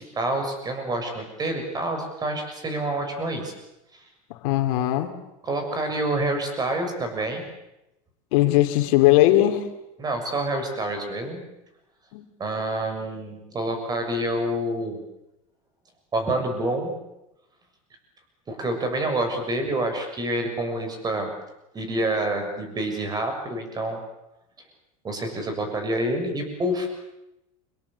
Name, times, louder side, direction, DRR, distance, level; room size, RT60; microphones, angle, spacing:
voice 1, 0.0-3.5 3.9-4.0 5.4-7.4 10.0-11.4 12.4-15.0 16.1-17.0 18.5-21.3 21.7-24.0 25.0-26.9, right 1 dB, 20° right, 6 dB, 6.8 m, -27 dB
voice 2, 4.4-5.1 8.3-9.7 12.1-12.2, left 15 dB, 70° left, 7 dB, 2.9 m, -19 dB
26.0 x 22.0 x 8.4 m, 0.91 s
supercardioid pair, 135°, 18 cm